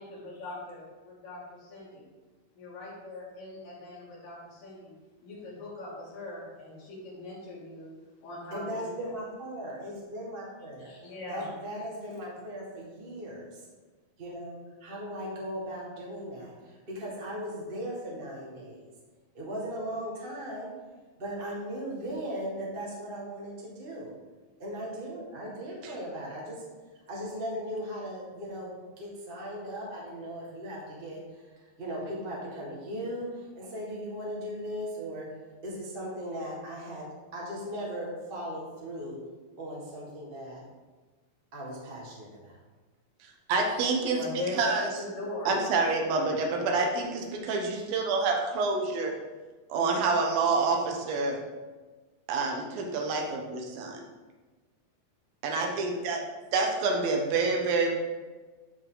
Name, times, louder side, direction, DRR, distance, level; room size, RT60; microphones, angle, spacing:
voice 1, 0.0-2.0 2.6-4.9 5.2-7.9 8.2-9.1 10.8-11.5 44.1-45.6, left 2 dB, 70° left, -8 dB, 4.6 m, -40 dB
voice 2, 8.5-10.9 11.3-13.6 14.2-18.9 19.3-20.7 21.2-24.1 24.6-26.7 27.1-31.4 31.8-39.2 39.6-40.6 41.5-42.6, equal, 40° right, -3 dB, 0.7 m, -38 dB
voice 3, 43.5-44.2 44.6-44.8 45.5-49.1 49.7-51.4 52.3-54.0 55.4-56.2 56.5-57.9, right 3 dB, 80° right, 1 dB, 3.0 m, -27 dB
12.5 x 5.0 x 3.9 m, 1.3 s
omnidirectional pair, 4.1 m